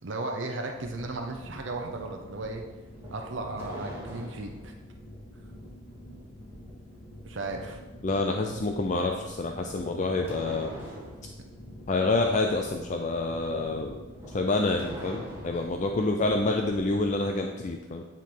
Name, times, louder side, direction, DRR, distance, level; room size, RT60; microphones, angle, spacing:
voice 1, 0.0-2.6 3.1-4.7 7.2-7.8, right 2 dB, 70° right, 3 dB, 0.7 m, -35 dB
sound 1, 0.7-17.1, equal, 75° left, 1.9 m, -47 dB
sound 2, 2.9-4.7 9.7-11.3 14.1-15.9, equal, 15° right, 2.3 m, -43 dB
voice 2, 8.0-10.7 11.9-14.0 14.3-18.0, left 2 dB, 40° left, 3 dB, 0.5 m, -27 dB
10.0 x 4.5 x 3.8 m, 1.2 s
head